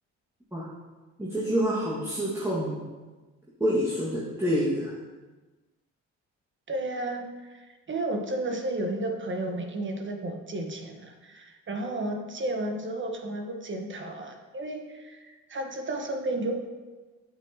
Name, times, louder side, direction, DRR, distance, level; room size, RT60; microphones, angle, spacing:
voice 1, 1.2-2.8 3.6-4.9, equal, 10° right, -8 dB, 1.7 m, -27 dB
voice 2, 6.7-16.5, right 1 dB, 40° right, 4 dB, 1.1 m, -33 dB
8.9 x 7.7 x 2.8 m, 1.3 s
cardioid pair, 90°, 30 cm